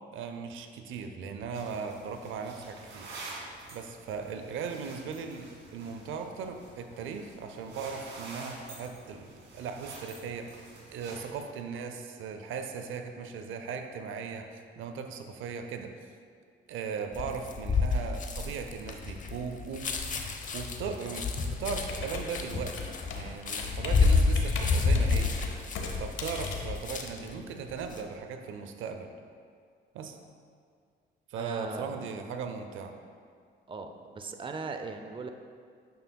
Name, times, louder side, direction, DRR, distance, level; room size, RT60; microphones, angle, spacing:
voice 1, 0.1-3.1 3.7-15.9 16.7-20.0 20.5-25.4 26.0-29.1 29.9-30.2 31.3-32.9, right 5 dB, 85° right, 6 dB, 0.6 m, -38 dB
sound 1, 1.5-11.4, right 2 dB, 65° right, 1.7 m, -48 dB
sound 2, 17.1-27.3 27.7-28.0, left 4 dB, 40° left, 0.7 m, -29 dB
Computer keyboard, 21.6-27.6, left 5 dB, 75° left, 0.9 m, -39 dB
voice 2, 31.4-32.1 33.7-35.3, right 4 dB, 25° right, 6 dB, 0.5 m, -39 dB
9.3 x 6.5 x 2.3 m, 2.1 s
cardioid pair, 90°, 20 cm